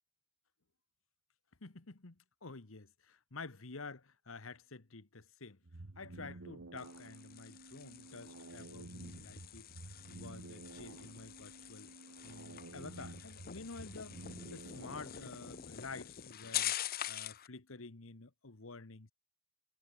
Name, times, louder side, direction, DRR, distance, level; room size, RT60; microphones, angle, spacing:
voice 1, 1.6-5.6 5.9-9.7 10.1-11.9 12.2-16.7 17.1-19.1, left 3 dB, 80° left, 1.5 m, -50 dB
sound 1, 5.6-15.6, right 2 dB, 80° right, 1.3 m, -52 dB
sound 2, 6.8-17.5, left 12 dB, 50° left, 0.7 m, -45 dB
head